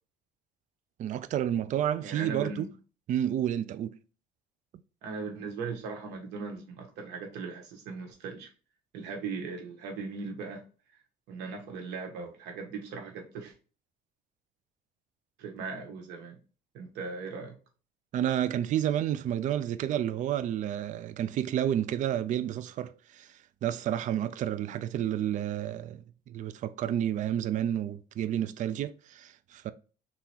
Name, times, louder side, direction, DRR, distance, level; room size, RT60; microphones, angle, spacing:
voice 1, 1.0-2.7 3.1-4.0 18.1-29.7, right 10 dB, 50° right, 0.4 m, -30 dB
voice 2, 2.0-2.7 5.0-8.5 8.9-10.6 11.3-13.5 15.4-16.4 16.7-17.5, right 4 dB, 90° right, 1.3 m, -38 dB
3.6 x 3.0 x 4.3 m
cardioid pair, 110°, 17 cm